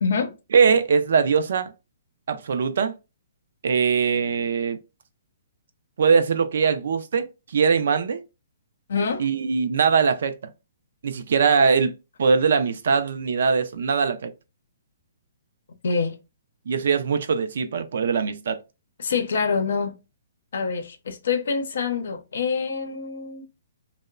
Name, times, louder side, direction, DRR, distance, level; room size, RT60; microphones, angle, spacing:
voice 1, 0.0-0.3 8.9-9.3 15.8-16.2 19.0-20.0 20.5-23.4, left 5 dB, 70° left, 0.6 m, -26 dB
voice 2, 0.5-1.7 2.3-2.9 3.6-4.8 6.0-8.2 9.2-10.4 11.0-11.9 12.2-14.3 16.7-18.6, right 5 dB, 65° right, 0.4 m, -21 dB
2.9 x 2.0 x 2.3 m
hypercardioid pair, 160°, 0 cm